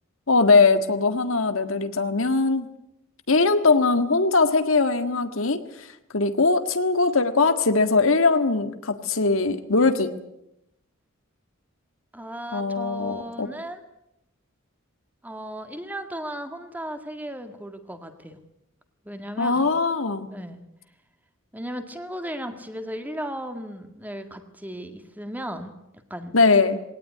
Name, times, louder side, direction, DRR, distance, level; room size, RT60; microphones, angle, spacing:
voice 1, 0.3-2.7 3.3-5.6 6.1-10.1 12.5-13.5 19.4-20.3 26.3-26.8, left 3 dB, 75° left, 8 dB, 1.8 m, -21 dB
voice 2, 12.1-13.8 15.2-18.4 19.0-19.7 20.3-20.6 21.5-25.7 26.1-26.3, equal, 10° right, 7 dB, 2.0 m, -35 dB
21.0 x 18.0 x 9.5 m, 0.84 s
head